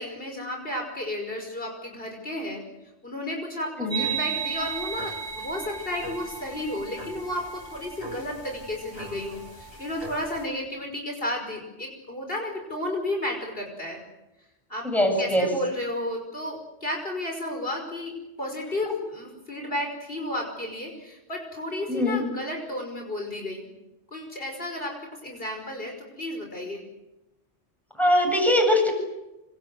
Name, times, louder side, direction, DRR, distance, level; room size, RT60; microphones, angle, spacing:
voice 1, 0.0-2.6 3.0-14.0 14.7-14.9 15.2-23.7 24.1-26.8, left 1 dB, 55° left, 2 dB, 5.6 m, -33 dB
sound 1, 3.9-10.4, right 6 dB, 20° right, 4.4 m, -35 dB
voice 2, 14.8-15.5 18.9-19.0 21.9-22.2 28.0-28.9, left 1 dB, ahead, 2 dB, 8.0 m, -22 dB
26.5 x 26.0 x 8.0 m, 0.96 s
omnidirectional pair, 1.2 m